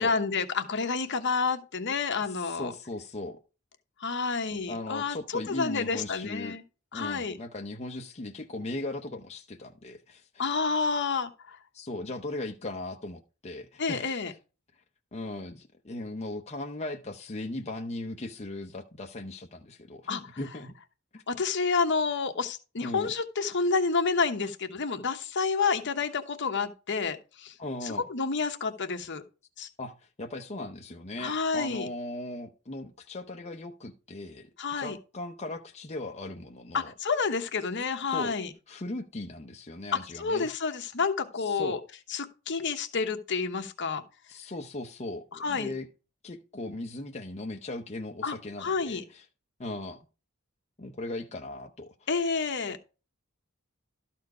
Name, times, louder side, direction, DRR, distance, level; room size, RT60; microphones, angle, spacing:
voice 1, 0.0-2.7 4.0-6.6 6.9-7.4 10.4-11.6 13.8-14.3 20.1-20.2 21.3-27.5 27.8-29.2 29.6-29.7 31.2-31.9 34.6-35.0 36.7-38.5 39.9-41.8 42.1-44.0 45.3-45.7 48.2-49.0 52.1-52.8, left 4 dB, 60° left, 1.1 m, -29 dB
voice 2, 2.2-3.4 4.5-6.6 6.9-10.4 11.7-14.3 15.1-20.7 21.1-21.2 22.8-23.1 27.6-28.0 29.8-34.5 34.8-36.9 38.1-38.4 38.7-40.5 41.5-41.8 44.3-45.9 46.2-49.2 49.6-50.0 50.8-52.1, left 2 dB, 30° left, 0.7 m, -38 dB
12.5 x 4.4 x 4.8 m
head